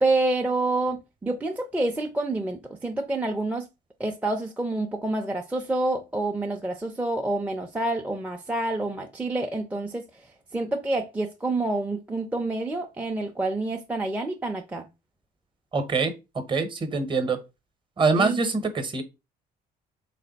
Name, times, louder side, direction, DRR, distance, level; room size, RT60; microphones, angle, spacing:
voice 1, 0.0-3.6 4.0-10.2 10.5-14.9 18.2-18.4, right 2 dB, 10° right, 0.4 m, -28 dB
voice 2, 15.7-16.1 16.5-17.4 18.0-19.0, right 4 dB, 30° right, 0.8 m, -24 dB
3.3 x 2.5 x 3.9 m
cardioid pair, 110°, 17 cm